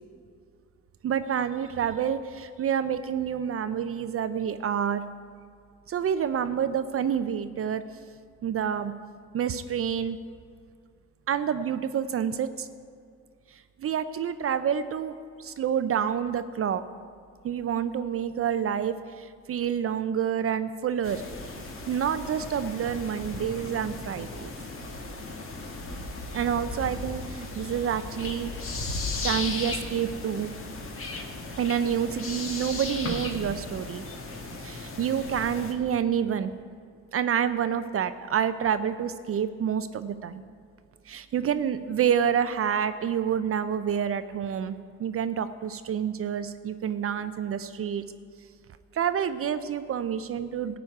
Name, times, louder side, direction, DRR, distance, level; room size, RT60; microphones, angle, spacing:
voice 1, 1.0-5.0 5.9-7.8 8.4-8.9 9.3-10.2 11.3-12.7 13.5-16.8 17.4-21.2 21.9-24.5 26.3-28.5 29.2-30.5 31.6-34.0 34.6-36.5 37.1-40.4 41.1-48.0 48.9-50.8, right 8 dB, 50° right, 12 dB, 0.5 m, -28 dB
sound 1, 21.0-35.7, left 3 dB, 45° left, 1.7 m, -36 dB
14.0 x 5.1 x 9.0 m, 2.3 s
cardioid pair, 90°, 30 cm